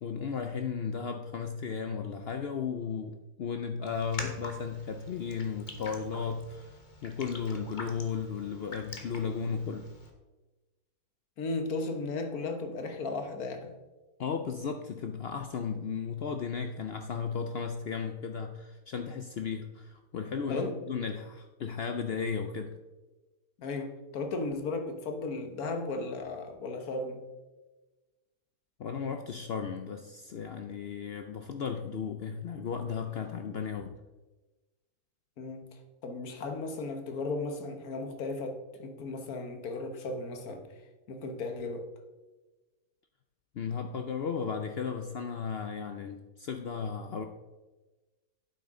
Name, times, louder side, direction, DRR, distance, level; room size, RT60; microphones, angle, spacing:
voice 1, 0.0-9.9 14.2-22.7 28.8-34.0 43.6-47.3, left 6 dB, 80° left, 6 dB, 0.5 m, -35 dB
Raindrop, 3.9-10.1, left 2 dB, 30° left, 1.1 m, -45 dB
voice 2, 11.4-13.7 20.5-20.8 23.6-27.2 35.4-35.8 36.0-40.6 41.1-41.9, left 3 dB, 65° left, 6 dB, 1.5 m, -35 dB
9.4 x 7.8 x 3.7 m, 1.2 s
omnidirectional pair, 1.7 m